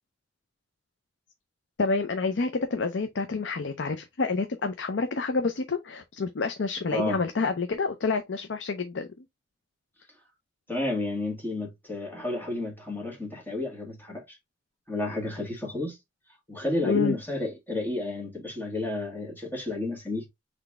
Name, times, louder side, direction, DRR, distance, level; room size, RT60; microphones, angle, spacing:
voice 1, 1.8-9.1 16.8-17.1, left 4 dB, 70° left, 0.6 m, -28 dB
voice 2, 10.7-14.4 14.9-16.0 16.5-20.3, left 2 dB, 10° left, 1.7 m, -31 dB
3.9 x 3.3 x 3.5 m
head